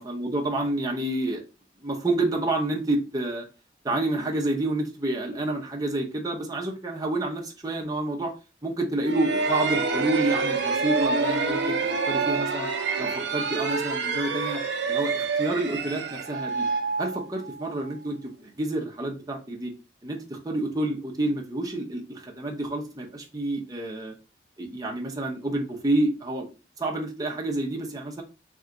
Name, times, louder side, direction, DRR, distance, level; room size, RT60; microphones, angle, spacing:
voice 1, 0.0-1.4 1.8-3.5 3.8-8.3 8.6-11.8 12.1-12.7 13.0-14.6 14.9-16.7 17.0-19.7 20.0-24.1 24.6-26.5 26.8-28.2, right 2 dB, 20° right, -1 dB, 0.8 m, -29 dB
sound 1, 9.0-17.7, right 4 dB, 70° right, 0.7 m, -27 dB
3.5 x 3.2 x 3.8 m, 0.31 s
head